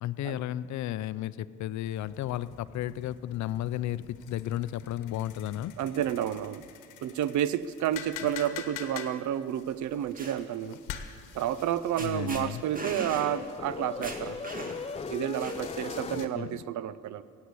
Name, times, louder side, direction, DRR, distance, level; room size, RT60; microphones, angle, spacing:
voice 1, 0.0-5.7 12.0-12.6 16.1-16.6, left 12 dB, 70° left, 15 dB, 0.5 m, -33 dB
sound 1, 1.8-16.3, left 9 dB, 85° left, 1.2 m, -47 dB
voice 2, 5.8-6.6 7.0-10.8 11.3-14.5 15.1-17.2, right 11 dB, 70° right, 16 dB, 0.6 m, -30 dB
sound 2, 9.8-10.4 11.6-11.7 12.0-12.4 12.8-13.3 13.7-13.8 14.0-14.9 15.4-15.9, right 2 dB, 30° right, 2.0 m, -39 dB
sound 3, 11.6-16.3, left 5 dB, 20° left, 0.6 m, -39 dB
15.5 x 8.5 x 8.3 m, 2.2 s
cardioid pair, 90°, 30 cm